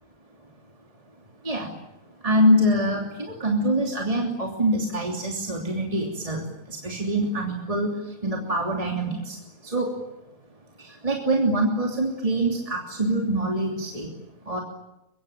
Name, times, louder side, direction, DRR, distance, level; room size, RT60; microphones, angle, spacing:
voice 1, 2.2-7.9 8.2-9.4 9.6-9.9 10.8-14.1 14.5-14.6, right 1 dB, 25° right, 0 dB, 3.2 m, -24 dB
24.0 x 23.5 x 9.0 m, 0.92 s
omnidirectional pair, 1.6 m